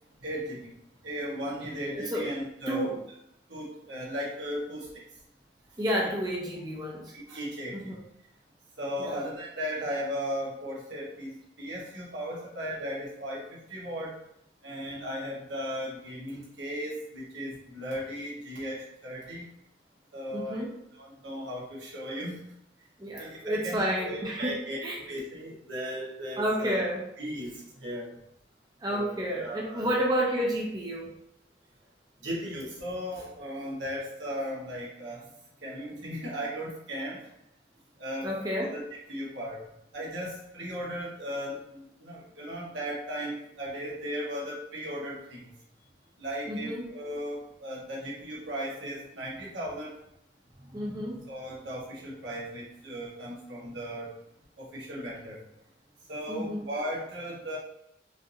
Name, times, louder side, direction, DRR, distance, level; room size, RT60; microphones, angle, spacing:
voice 1, 0.2-0.7 1.0-3.0 3.5-4.9 6.0-6.1 7.1-7.9 8.8-11.3 11.6-14.1 14.6-19.4 20.1-20.6 21.0-22.4 23.2-26.8 27.2-28.1 28.9-29.9 32.2-35.2 35.6-37.2 38.0-38.8 39.1-39.6 39.9-45.5 46.2-50.0 51.3-54.1 54.6-55.4 56.1-57.6, equal, 80° right, -5 dB, 1.4 m, -36 dB
voice 2, 1.9-2.3 2.7-3.0 5.8-7.1 7.7-8.0 9.0-9.2 20.3-20.7 23.0-24.5 24.8-25.0 26.4-27.0 28.8-31.1 38.2-38.7 46.5-46.9 50.7-51.2 56.3-56.6, equal, 20° right, -3 dB, 0.6 m, -30 dB
5.0 x 2.7 x 2.7 m, 0.78 s
head